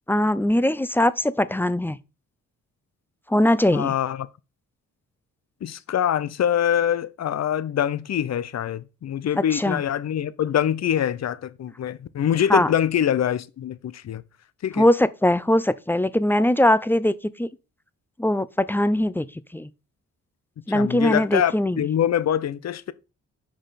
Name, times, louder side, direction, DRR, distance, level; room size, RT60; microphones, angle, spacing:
voice 1, 0.1-2.0 3.3-3.9 9.5-9.8 12.5-12.7 14.8-17.5 18.2-19.3 19.5-19.7 20.7-21.8, left 1 dB, 5° left, 0.5 m, -21 dB
voice 2, 3.7-4.3 5.6-14.2 14.6-14.9 20.7-22.9, left 10 dB, 45° left, 0.6 m, -24 dB
5.8 x 5.1 x 4.2 m
supercardioid pair, 45°, 36 cm